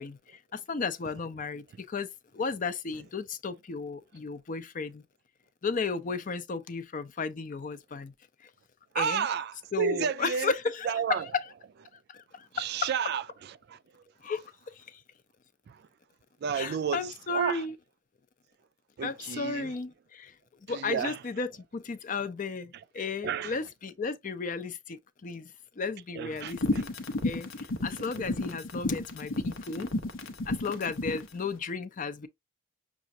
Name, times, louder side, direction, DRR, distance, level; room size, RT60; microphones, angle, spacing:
voice 1, 0.0-2.1 2.3-5.0 5.6-8.1 8.4-8.5 8.9-9.3 9.7-11.5 12.1-12.9 14.2-14.4 14.8-15.0 16.5-17.8 19.0-20.3 20.7-25.5 25.8-26.9 27.2-29.9 30.5-32.3, left 4 dB, 40° left, 0.5 m, -34 dB
voice 2, 8.9-10.5 10.8-11.3 12.5-13.2 13.7-14.0 15.7-15.8 16.4-17.0 17.3-17.6 19.0-19.7 20.7-21.2 23.0-23.5 26.1-26.8 28.2-28.3, right 7 dB, 55° right, 0.3 m, -31 dB
sound 1, 26.4-31.3, left 2 dB, 85° left, 0.8 m, -32 dB
6.1 x 2.4 x 2.7 m
head